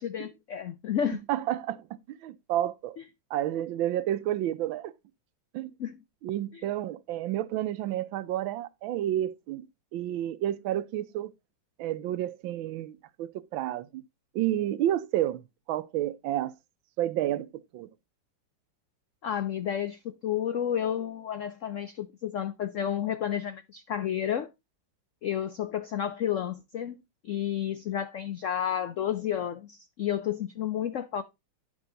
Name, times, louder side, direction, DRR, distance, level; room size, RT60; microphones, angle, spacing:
voice 1, 0.0-1.2 5.8-6.0 6.5-6.6 19.2-24.5 25.2-31.2, left 9 dB, 85° left, 0.6 m, -31 dB
voice 2, 1.3-3.0 3.3-4.9 5.5-5.7 6.2-9.7 9.9-11.3 11.8-14.0 14.3-15.4 15.7-16.5 17.0-17.5 17.7-17.9, right 12 dB, 85° right, 1.4 m, -30 dB
10.0 x 6.2 x 3.8 m
omnidirectional pair, 2.1 m